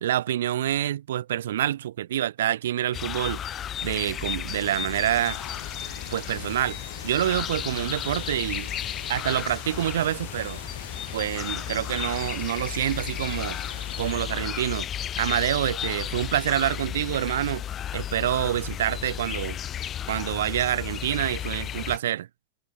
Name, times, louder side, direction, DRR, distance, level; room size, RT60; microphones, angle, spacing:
voice 1, 0.0-3.4 3.8-5.4 6.1-6.8 7.0-8.7 9.1-10.6 11.1-13.6 14.0-14.9 15.2-17.6 17.9-19.5 20.1-22.3, right 12 dB, 60° right, 1.6 m, -27 dB
sound 1, 2.9-22.0, left 10 dB, 30° left, 5.2 m, -34 dB
sound 2, 5.2-14.1, left 5 dB, 75° left, 4.3 m, -43 dB
open air
figure-of-eight pair, 90°, 0 cm